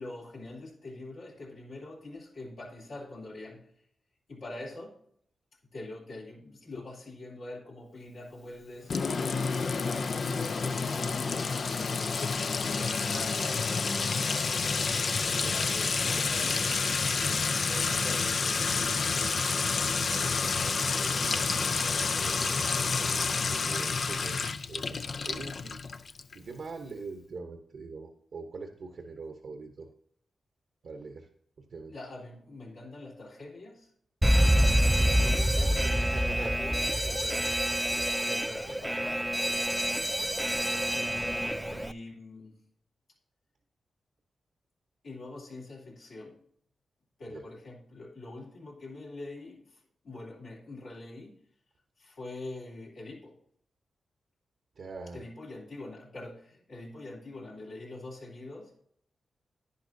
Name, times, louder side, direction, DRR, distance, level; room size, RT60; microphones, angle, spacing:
voice 1, 0.0-3.7 4.3-5.0 5.7-11.5 12.6-14.6 15.5-19.2 31.9-33.9 34.4-39.7 40.9-42.6 45.0-46.4 47.2-51.4 52.0-53.4 55.1-58.7, left 2 dB, 80° left, -4 dB, 3.3 m, -44 dB
Sink (filling or washing) / Trickle dribble / Fill (with liquid), 8.9-26.3, left 4 dB, 60° left, 0.5 m, -29 dB
voice 2, 20.6-21.8 22.2-23.2 23.4-29.9 30.8-31.3 31.6-31.9 35.8-36.5 36.9-37.0 47.3-47.4 54.8-55.2, right 4 dB, 70° right, 5 dB, 1.0 m, -44 dB
Alarm, 34.2-41.9, equal, 10° right, 0.4 m, -27 dB
10.5 x 10.5 x 2.7 m, 0.66 s
cardioid pair, 50°, 0 cm